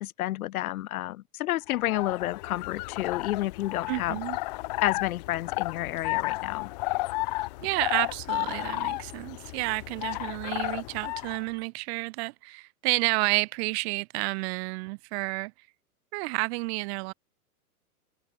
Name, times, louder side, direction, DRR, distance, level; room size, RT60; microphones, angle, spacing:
voice 1, 0.0-4.2 4.8-6.7, left 15 dB, 65° left, 0.9 m, -30 dB
sound 1, 1.7-11.4, left 22 dB, 30° left, 0.4 m, -33 dB
voice 2, 3.9-4.4 7.6-15.5 16.1-17.1, right 28 dB, 45° right, 2.2 m, -30 dB
hypercardioid pair, 140°, 46 cm